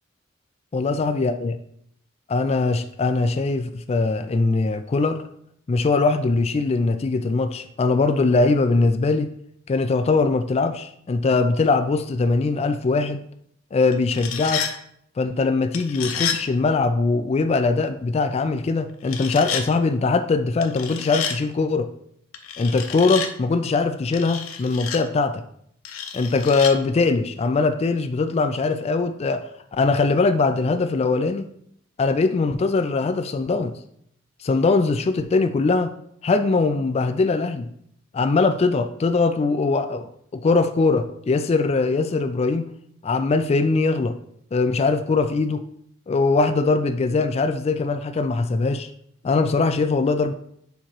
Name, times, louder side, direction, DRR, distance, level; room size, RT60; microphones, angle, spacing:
voice 1, 0.7-1.6 2.3-5.2 5.7-9.3 9.7-13.2 13.7-14.7 15.2-21.9 22.6-25.4 26.1-31.5 32.0-33.7 34.4-36.0 36.2-37.7 38.1-42.6 43.0-44.2 44.5-45.6 46.1-48.9 49.2-50.3, left 3 dB, 30° left, 8 dB, 0.3 m, -21 dB
sound 1, 13.9-14.7 15.7-16.4 19.0-19.6 20.6-21.4 22.3-23.3 24.1-25.0 25.8-26.7, left 7 dB, 85° left, 0.7 m, -29 dB
7.2 x 3.0 x 4.4 m, 0.69 s
head